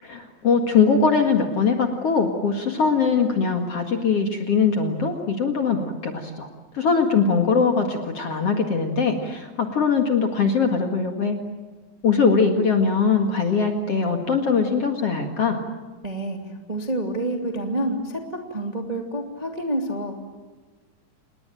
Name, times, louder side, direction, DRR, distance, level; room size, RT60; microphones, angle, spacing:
voice 1, 0.0-6.5 6.7-11.4 12.0-15.6, left 5 dB, 45° left, 4 dB, 2.4 m, -21 dB
voice 2, 16.0-20.1, right 1 dB, 15° right, 3 dB, 1.7 m, -28 dB
28.5 x 20.5 x 9.0 m, 1.3 s
omnidirectional pair, 4.4 m